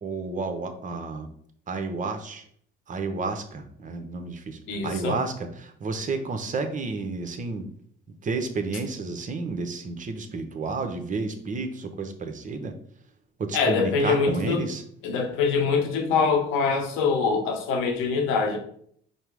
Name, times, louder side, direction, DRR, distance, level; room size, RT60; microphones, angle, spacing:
voice 1, 0.0-1.3 1.7-2.4 2.9-7.7 8.2-12.7 13.4-14.8, right 3 dB, 40° right, 7 dB, 0.8 m, -31 dB
voice 2, 4.7-5.2 13.5-14.7 15.0-18.6, left 5 dB, 85° left, 3 dB, 1.0 m, -24 dB
5.3 x 2.0 x 4.7 m, 0.64 s
supercardioid pair, 75°, 20 cm